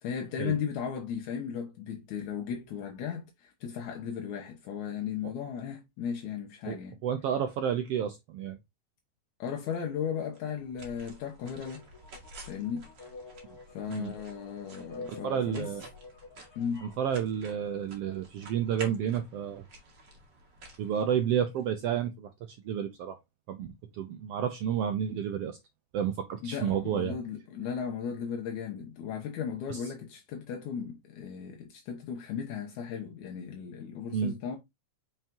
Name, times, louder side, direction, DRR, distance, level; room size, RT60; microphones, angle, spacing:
voice 1, 0.0-7.0 9.4-11.8 12.5-12.9 13.7-15.7 16.6-16.9 26.4-34.6, left 7 dB, 75° left, 2.3 m, -36 dB
voice 2, 7.0-8.6 13.9-14.1 15.2-15.8 16.8-19.6 20.8-22.3 22.6-23.2 23.5-23.7 23.9-25.6 25.9-27.2 29.7-29.8 34.1-34.3, right 8 dB, 75° right, 1.4 m, -30 dB
sound 1, 10.3-21.6, right 2 dB, 40° right, 2.2 m, -51 dB
sound 2, 11.4-17.1, left 3 dB, 35° left, 2.0 m, -49 dB
5.8 x 5.6 x 2.9 m
omnidirectional pair, 3.5 m